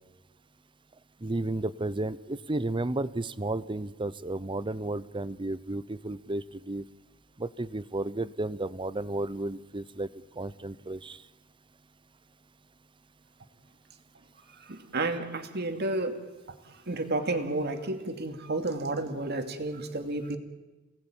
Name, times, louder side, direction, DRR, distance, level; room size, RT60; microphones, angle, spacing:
voice 1, 1.2-6.9 7.4-10.1 10.4-11.2, right 2 dB, 25° right, 16 dB, 0.8 m, -33 dB
voice 2, 14.7-16.2 16.9-20.4, right 2 dB, 50° right, 6 dB, 2.5 m, -31 dB
29.0 x 19.0 x 9.0 m, 1.1 s
head